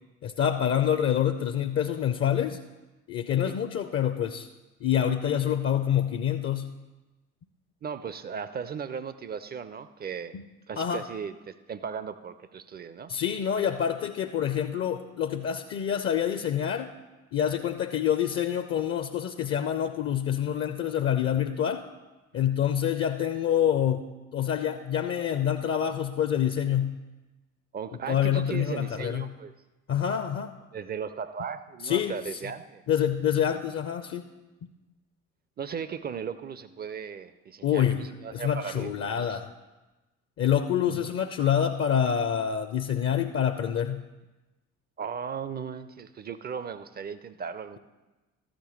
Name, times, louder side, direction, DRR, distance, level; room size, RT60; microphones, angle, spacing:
voice 1, 0.2-2.6 3.1-4.5 4.8-6.7 10.3-10.4 10.8-11.0 13.1-16.9 17.3-21.8 22.3-24.0 24.3-27.0 28.1-29.3 29.9-30.5 31.8-32.2 32.9-34.3 37.6-39.5 40.4-44.0, left 9 dB, 30° left, 9 dB, 0.5 m, -26 dB
voice 2, 7.8-10.3 10.7-13.1 22.3-22.6 27.7-29.5 30.7-32.8 35.6-39.4 40.9-41.1 45.0-47.8, right 6 dB, 25° right, 13 dB, 0.4 m, -37 dB
13.0 x 5.1 x 7.0 m, 1.1 s
figure-of-eight pair, 55°, 44 cm